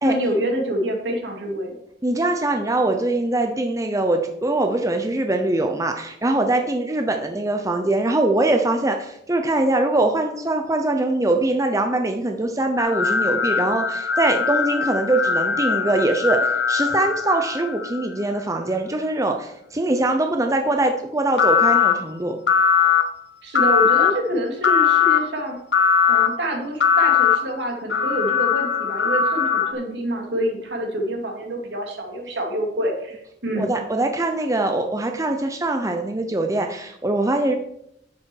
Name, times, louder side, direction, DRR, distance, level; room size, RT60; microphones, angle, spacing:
voice 1, 0.0-1.7 23.4-25.6 26.1-33.7, equal, 65° right, 1 dB, 2.8 m, -26 dB
voice 2, 2.0-22.4 33.6-37.6, right 2 dB, 15° right, 4 dB, 0.7 m, -22 dB
sound 1, 12.8-18.1 21.4-21.9 22.5-23.0 23.5-24.1 24.6-25.2 25.7-26.3 26.8-27.4 27.9-29.7, left 7 dB, 70° left, 1.1 m, -20 dB
10.5 x 7.7 x 4.7 m, 0.78 s
head